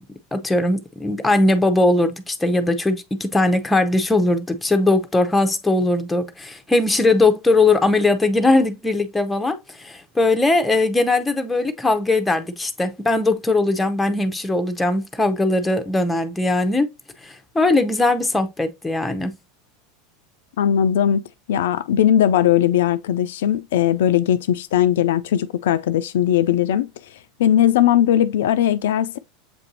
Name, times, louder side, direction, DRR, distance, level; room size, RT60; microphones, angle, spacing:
voice 1, 0.3-16.9 17.2-19.3, left 2 dB, 10° left, 0.6 m, -20 dB
voice 2, 20.6-26.9 27.4-29.2, left 10 dB, 75° left, 0.3 m, -19 dB
7.2 x 2.6 x 2.7 m
hypercardioid pair, 95°, 0 cm